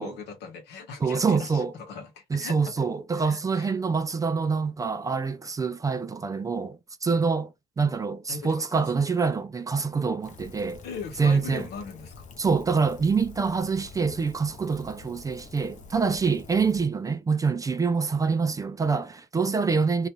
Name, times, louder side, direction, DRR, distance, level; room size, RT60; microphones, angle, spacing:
voice 1, 0.0-2.7 3.1-3.7 8.3-9.1 10.8-12.4, left 5 dB, 80° left, 1.0 m, -40 dB
voice 2, 1.0-1.7 2.3-10.8 11.2-11.7 12.4-20.1, right 5 dB, 20° right, 0.3 m, -26 dB
Rain, 10.2-16.9, left 5 dB, 45° left, 0.6 m, -47 dB
2.5 x 2.3 x 2.9 m
cardioid pair, 110°, 17 cm